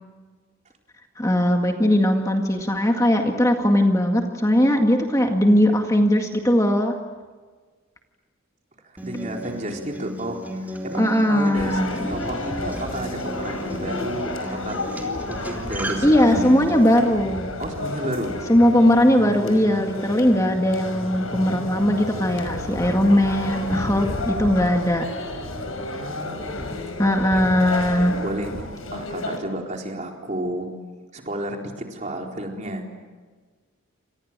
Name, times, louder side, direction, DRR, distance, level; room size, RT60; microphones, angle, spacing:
voice 1, 1.2-7.0 11.0-12.0 16.0-17.5 18.5-25.0 27.0-28.2, left 1 dB, 15° left, 3 dB, 2.0 m, -19 dB
voice 2, 8.8-14.8 15.3-16.6 17.6-18.4 25.9-26.8 27.3-27.6 28.2-30.7 31.1-32.9, right 1 dB, 35° right, 1 dB, 4.2 m, -32 dB
Acoustic guitar, 9.0-17.0, equal, 10° right, 3.5 m, -35 dB
sound 1, 11.5-29.4, left 2 dB, 85° left, 5.8 m, -31 dB
29.0 x 27.0 x 7.5 m, 1.4 s
head